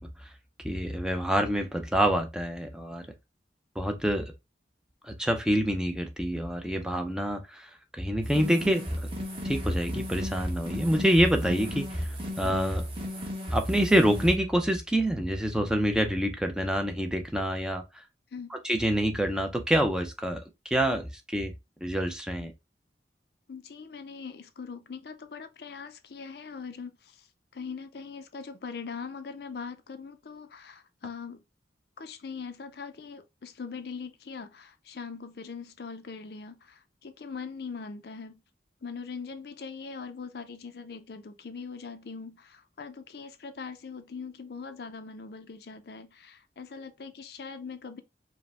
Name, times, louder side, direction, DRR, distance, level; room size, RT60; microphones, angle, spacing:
voice 1, 0.6-3.1 3.8-4.3 5.0-9.1 9.4-12.9 13.5-18.0 18.5-21.5 21.8-22.5, equal, 5° right, 0.5 m, -27 dB
sound 1, 8.2-14.3, equal, 30° right, 1.0 m, -34 dB
voice 2, 23.5-27.3 27.5-31.4 32.0-38.4 38.8-48.0, left 5 dB, 65° left, 0.5 m, -41 dB
4.9 x 2.1 x 3.2 m
head